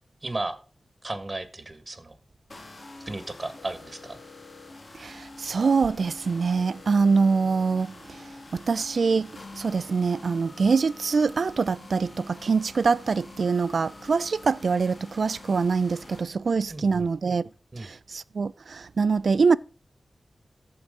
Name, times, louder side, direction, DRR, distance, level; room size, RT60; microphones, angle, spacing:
voice 1, 0.2-0.6 1.0-2.2 3.0-4.2 16.7-17.1 17.7-17.9, right 2 dB, 35° right, 1.6 m, -34 dB
sound 1, 2.5-16.2, left 2 dB, 50° left, 2.0 m, -46 dB
voice 2, 5.0-7.9 8.5-9.3 9.6-17.5 17.8-19.6, right 4 dB, 75° right, 0.4 m, -24 dB
14.0 x 4.8 x 3.7 m
wide cardioid pair, 60°, 0 cm